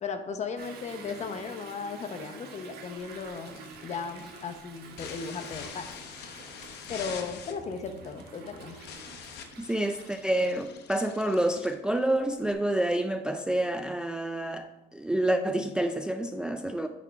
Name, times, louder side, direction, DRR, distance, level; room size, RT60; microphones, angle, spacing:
voice 1, 0.0-5.9 6.9-8.8, left 5 dB, 40° left, 0.8 m, -36 dB
Toilet flush / Drip / Trickle dribble, 0.6-10.7, right 5 dB, 70° right, 1.1 m, -48 dB
sound 1, 3.0-12.5, left 7 dB, 75° left, 0.9 m, -45 dB
voice 2, 9.6-16.9, right 1 dB, 5° right, 0.3 m, -28 dB
9.2 x 3.7 x 4.6 m
cardioid pair, 110°, 17 cm